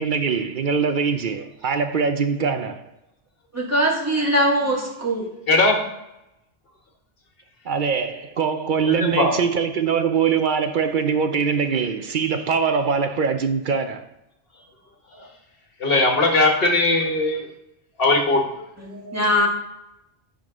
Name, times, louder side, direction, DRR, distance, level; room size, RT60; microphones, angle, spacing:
voice 1, 0.0-2.8 7.7-14.0, right 6 dB, 55° right, 0.6 m, -22 dB
voice 2, 3.5-5.2 18.8-19.5, equal, 15° right, 1.7 m, -21 dB
voice 3, 5.5-5.8 8.8-9.4 15.8-17.5 18.0-18.4, left 2 dB, 55° left, 1.5 m, -19 dB
10.0 x 3.8 x 3.6 m
omnidirectional pair, 1.2 m